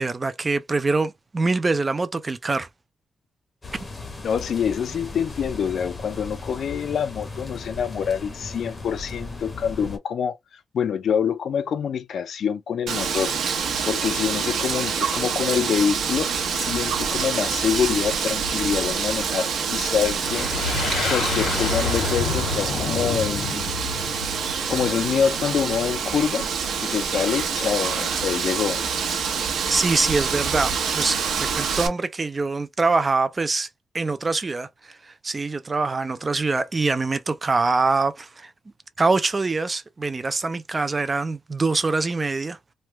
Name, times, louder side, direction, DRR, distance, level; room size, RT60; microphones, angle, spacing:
voice 1, 0.0-2.7 29.7-33.7 33.9-38.5 39.0-42.6, right 3 dB, 20° right, 0.3 m, -24 dB
sound 1, 3.6-10.0, left 3 dB, 20° left, 0.7 m, -37 dB
voice 2, 4.2-10.4 10.7-13.3 13.8-20.5 21.0-23.7 24.7-26.5 26.8-28.8, left 7 dB, 55° left, 0.4 m, -26 dB
Wind, 12.9-31.9, right 6 dB, 80° right, 0.9 m, -26 dB
sound 2, 20.2-25.1, left 4 dB, 85° left, 1.5 m, -28 dB
3.1 x 2.2 x 2.9 m
wide cardioid pair, 175°, 0 cm